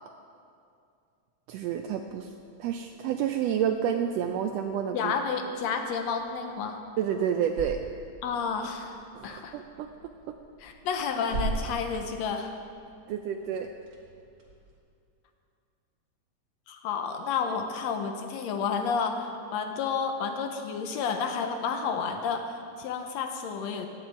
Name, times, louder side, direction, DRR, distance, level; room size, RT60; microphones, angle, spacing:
voice 1, 1.5-2.3 2.6-5.1 7.0-7.8 9.1-9.9 10.3-10.4 13.1-13.7, right 9 dB, 80° right, 6 dB, 1.5 m, -29 dB
sound 1, 1.6-14.8, right 2 dB, 45° right, 1.9 m, -43 dB
voice 2, 4.9-6.8 8.2-9.0 9.2-9.6 10.6-12.5 16.7-23.9, left 5 dB, 75° left, 5 dB, 1.9 m, -31 dB
15.5 x 8.9 x 4.5 m, 2.5 s
omnidirectional pair, 3.3 m